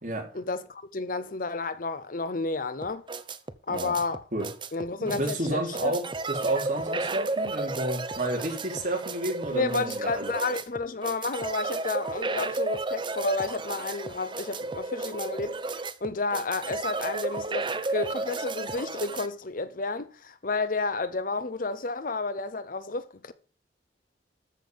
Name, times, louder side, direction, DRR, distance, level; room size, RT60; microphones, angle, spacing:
voice 1, 0.3-3.0 3.7-4.2 4.7-5.9 9.5-23.3, left 3 dB, 50° left, 0.8 m, -31 dB
sound 1, 2.8-19.3, right 3 dB, 25° right, 0.8 m, -33 dB
voice 2, 5.1-10.3, right 1 dB, 45° right, 3.4 m, -31 dB
13.5 x 5.6 x 7.1 m
head